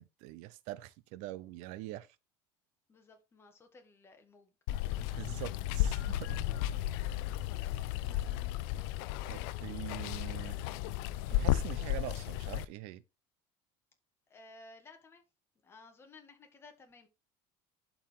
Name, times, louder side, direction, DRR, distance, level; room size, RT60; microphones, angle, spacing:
voice 1, 0.0-2.1 5.2-6.5 9.3-10.6 11.3-13.0, right 16 dB, 70° right, 0.6 m, -44 dB
voice 2, 2.9-4.5 7.5-8.4 14.3-15.2 15.6-17.1, left 3 dB, 20° left, 1.7 m, -57 dB
Water, 4.7-12.6, left 14 dB, 85° left, 0.5 m, -34 dB
11.5 x 4.6 x 3.6 m
cardioid pair, 160°, 12 cm